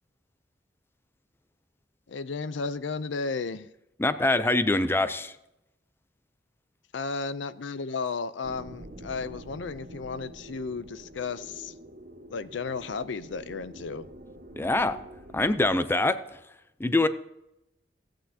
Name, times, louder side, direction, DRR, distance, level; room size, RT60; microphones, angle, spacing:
voice 1, 2.1-3.7 6.9-11.7 12.3-14.1, left 4 dB, 75° left, 15 dB, 0.5 m, -34 dB
voice 2, 4.0-5.4 14.6-15.0 15.3-16.4 16.8-17.1, left 2 dB, 15° left, 12 dB, 0.4 m, -24 dB
sound 1, 8.4-15.7, right 1 dB, 55° right, 1.8 m, -46 dB
15.5 x 8.9 x 2.8 m, 0.86 s
head